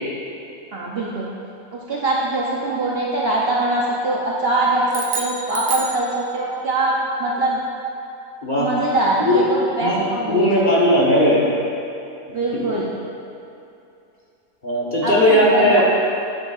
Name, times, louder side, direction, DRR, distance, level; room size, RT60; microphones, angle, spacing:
voice 1, 0.7-1.3 1.7-6.9 7.2-7.6 8.6-10.7 12.3-12.9 15.0-15.8, right 2 dB, 55° right, -5 dB, 0.7 m, -22 dB
sound 1, 4.9-6.7, right 5 dB, 70° right, 1.1 m, -29 dB
voice 2, 10.3-11.4 12.5-12.7 14.6-15.8, equal, 35° left, -6 dB, 1.1 m, -17 dB
9.6 x 6.8 x 2.4 m, 2.8 s
omnidirectional pair, 1.5 m